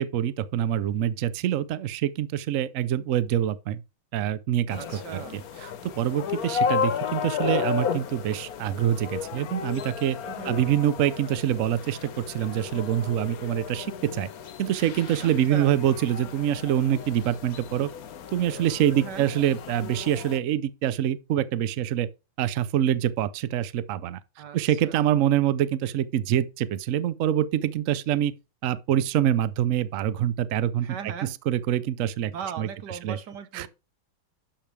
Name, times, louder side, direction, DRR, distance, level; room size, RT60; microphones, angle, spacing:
voice 1, 0.0-3.8 4.1-4.8 6.0-10.2 10.4-14.3 14.6-17.9 18.3-22.1 22.4-24.2 24.5-28.3 28.6-30.9 31.5-32.3 32.6-32.7 33.0-33.2 33.5-33.7, right 11 dB, 85° right, 0.7 m, -25 dB
sound 1, 4.7-20.4, left 7 dB, 60° left, 1.1 m, -33 dB
voice 2, 4.7-5.4 10.2-10.6 15.2-15.8 18.9-19.3 24.4-25.0 30.8-31.3 32.3-33.7, right 7 dB, 60° right, 1.6 m, -38 dB
11.5 x 6.6 x 3.3 m
omnidirectional pair, 2.2 m